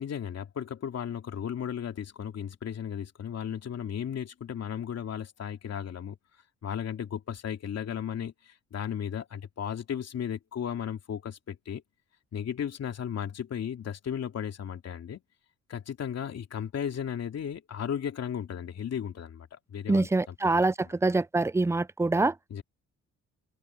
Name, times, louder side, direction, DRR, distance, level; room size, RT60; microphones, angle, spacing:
voice 1, 0.0-6.1 6.6-11.8 12.3-15.2 15.7-20.9 22.5-22.6, left 8 dB, 55° left, 3.0 m, -35 dB
voice 2, 19.9-20.7 21.0-22.3, right 3 dB, 10° right, 0.5 m, -24 dB
cardioid pair, 90°, 30 cm